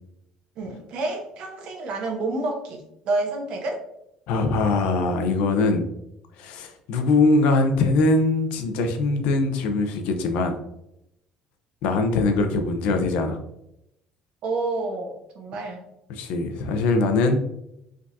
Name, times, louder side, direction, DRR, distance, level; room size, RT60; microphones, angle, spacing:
voice 1, 0.6-3.8 14.4-15.8, right 2 dB, 55° right, 1 dB, 1.1 m, -29 dB
voice 2, 4.3-5.8 6.4-10.6 11.8-13.4 16.1-17.4, left 3 dB, 80° left, 6 dB, 0.7 m, -22 dB
5.0 x 3.6 x 2.7 m, 0.81 s
cardioid pair, 180°, 2 cm